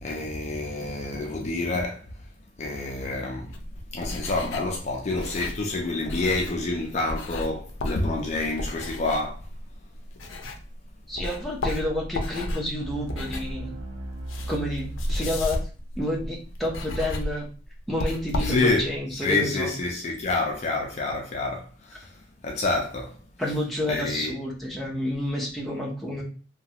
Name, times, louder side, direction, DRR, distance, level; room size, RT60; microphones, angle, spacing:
voice 1, 0.0-2.0 2.6-3.5 3.9-9.4 18.4-21.7 21.9-22.0 22.4-23.1 23.9-24.3, left 2 dB, 35° left, 0.4 m, -28 dB
sound 1, 3.5-10.8 11.1-19.0, left 1 dB, 85° left, 0.5 m, -33 dB
voice 2, 11.1-13.7 14.5-15.6 16.0-17.5 17.9-19.7 23.4-26.2, left 1 dB, ahead, 0.7 m, -29 dB
sound 2, 12.8-15.6, right 1 dB, 90° right, 0.6 m, -37 dB
2.9 x 2.2 x 2.8 m
head